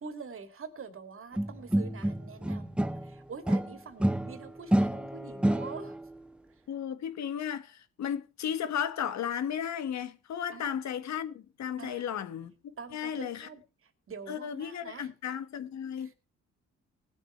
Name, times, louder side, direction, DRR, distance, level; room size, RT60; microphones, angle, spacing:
voice 1, 0.0-5.9 10.5-10.8 11.8-12.0 12.8-13.6 14.1-15.1, right 5 dB, 45° right, 2.6 m, -45 dB
sound 1, 1.4-3.1 3.5-6.0, right 1 dB, 5° right, 0.5 m, -29 dB
voice 2, 6.7-13.5 14.3-16.1, left 9 dB, 65° left, 1.4 m, -35 dB
19.5 x 7.3 x 4.5 m
cardioid pair, 90°, 30 cm